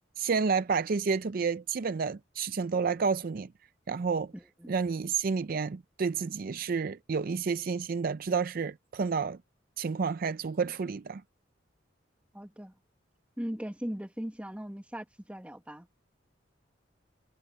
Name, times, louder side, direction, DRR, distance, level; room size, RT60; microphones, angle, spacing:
voice 1, 0.2-3.5 3.9-4.3 4.7-9.4 9.8-11.2, right 5 dB, 50° right, 0.4 m, -30 dB
voice 2, 4.3-4.7 12.3-12.7 13.4-15.9, equal, 5° right, 1.5 m, -39 dB
head